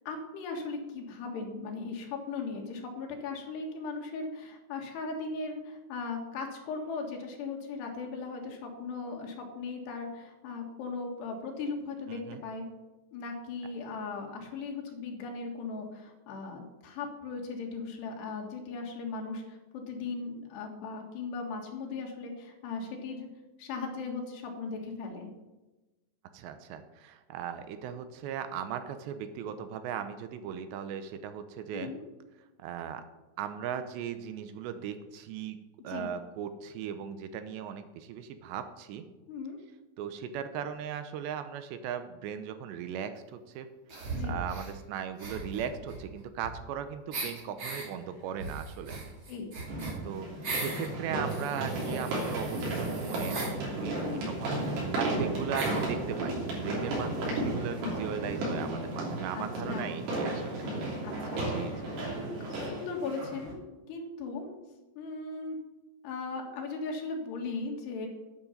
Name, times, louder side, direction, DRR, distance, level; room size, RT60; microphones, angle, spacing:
voice 1, 0.1-12.7 13.1-23.3 23.6-25.3 31.7-32.0 35.9-36.1 39.3-39.6 44.1-44.4 49.3-49.5 54.0-54.3 57.1-57.3 59.3-60.0 61.0-63.6 63.9-64.6 65.0-65.6 66.0-68.1, left 4 dB, 70° left, 1 dB, 3.8 m, -38 dB
voice 2, 12.1-12.4 26.3-31.9 32.6-33.0 33.4-35.6 35.8-39.1 40.0-43.7 44.2-49.0 50.0-60.6 61.5-61.7, right 8 dB, 85° right, 10 dB, 2.9 m, -38 dB
sound 1, 43.9-44.7 45.2-46.8 47.1-47.9 48.4-50.9 51.3-53.5 54.4-54.5 54.7-54.8 55.5-55.9, right 3 dB, 35° right, 2.6 m, -39 dB
sound 2, 47.7-47.8 49.7-63.5, right 2 dB, 65° right, 5.0 m, -33 dB
9.7 x 9.1 x 7.4 m, 1.1 s
omnidirectional pair, 5.2 m